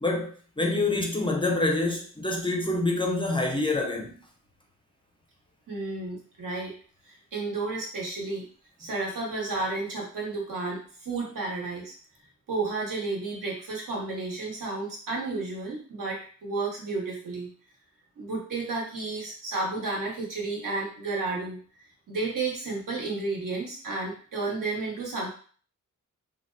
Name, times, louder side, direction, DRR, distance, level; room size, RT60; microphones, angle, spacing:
voice 1, 0.0-4.2, left 2 dB, 15° left, 0.4 m, -26 dB
voice 2, 5.7-6.7 7.1-8.5 8.8-11.9 12.5-17.5 18.2-21.6 22.1-25.3, right 3 dB, 70° right, 1.2 m, -32 dB
2.7 x 2.2 x 3.2 m
wide cardioid pair, 110°, 33 cm